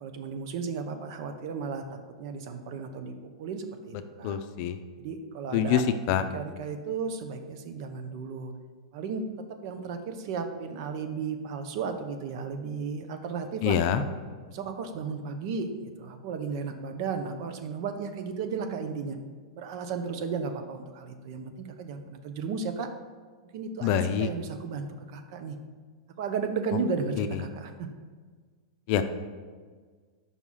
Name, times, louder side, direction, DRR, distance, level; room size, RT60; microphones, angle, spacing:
voice 1, 0.0-3.1 3.4-4.4 5.0-5.8 6.3-8.5 8.9-9.2 9.6-13.8 14.5-19.2 19.5-22.9 23.5-25.6 26.2-27.9, right 5 dB, 55° right, 7 dB, 0.7 m, -34 dB
voice 2, 4.2-4.8 5.5-5.8 6.1-6.2 13.6-14.0 23.8-24.3 27.2-27.3 28.9-29.0, left 9 dB, 50° left, 9 dB, 0.5 m, -25 dB
5.6 x 4.7 x 5.5 m, 1.5 s
hypercardioid pair, 105°, 3 cm